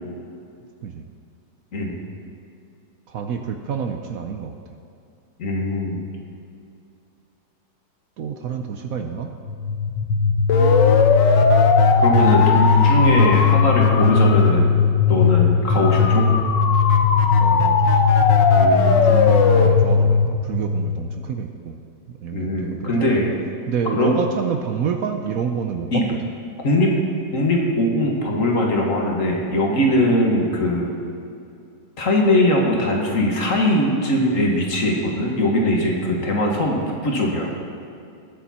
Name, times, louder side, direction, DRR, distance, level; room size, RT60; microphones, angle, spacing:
voice 1, 3.1-4.5 8.2-9.3 12.9-13.8 17.4-17.9 19.0-21.8 22.2-23.1 23.7-26.2 30.3-30.4 36.1-36.3, right 6 dB, 65° right, 5 dB, 0.9 m, -28 dB
voice 2, 5.4-6.0 12.0-14.8 15.1-16.2 18.5-19.0 22.3-23.3 23.9-24.1 25.9-26.0 26.6-26.9 27.3-30.9 32.0-37.5, left 1 dB, 45° left, -1 dB, 1.9 m, -20 dB
sound 1, 9.5-21.3, left 5 dB, 80° left, 1.5 m, -16 dB
19.5 x 7.0 x 4.3 m, 2.5 s
omnidirectional pair, 2.0 m